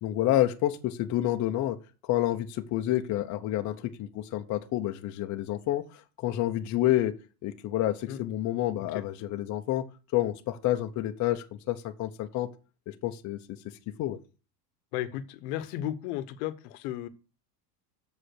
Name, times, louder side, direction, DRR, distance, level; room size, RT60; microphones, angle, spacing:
voice 1, 0.0-1.8 2.0-7.2 7.4-9.9 10.1-12.5 12.9-14.2, left 14 dB, 35° left, 0.8 m, -29 dB
voice 2, 14.9-17.1, left 12 dB, 65° left, 1.1 m, -34 dB
7.3 x 5.0 x 6.4 m
supercardioid pair, 135°, 50 cm